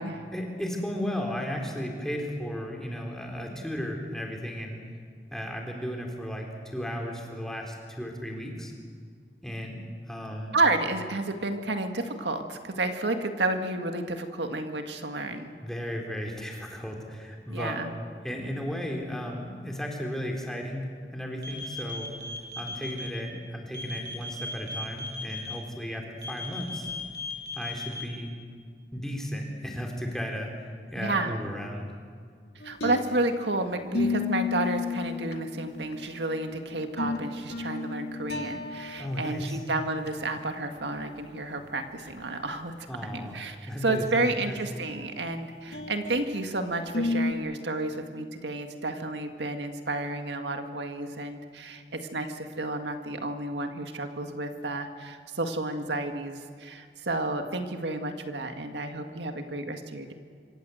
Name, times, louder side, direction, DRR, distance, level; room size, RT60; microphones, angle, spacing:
voice 1, 0.3-4.8 5.3-8.7 9.4-10.6 15.6-17.8 18.2-22.1 22.6-26.9 27.5-28.3 28.9-31.9 39.0-39.6 42.9-44.8, equal, 5° left, 1 dB, 3.8 m, -35 dB
voice 2, 10.5-15.5 17.5-17.9 31.0-31.3 32.6-42.9 43.1-60.1, right 2 dB, 85° right, 6 dB, 1.9 m, -31 dB
sound 1, 21.4-23.1 23.7-25.5 26.2-28.0, left 2 dB, 60° right, 7.8 m, -37 dB
sound 2, 32.6-33.5 33.9-36.1 36.7-39.2 39.5-39.6 40.0-40.1 41.6-41.7 42.1-42.2 45.7-46.4 46.9-47.3, left 4 dB, 80° left, 2.1 m, -32 dB
26.5 x 25.5 x 8.0 m, 2.1 s
head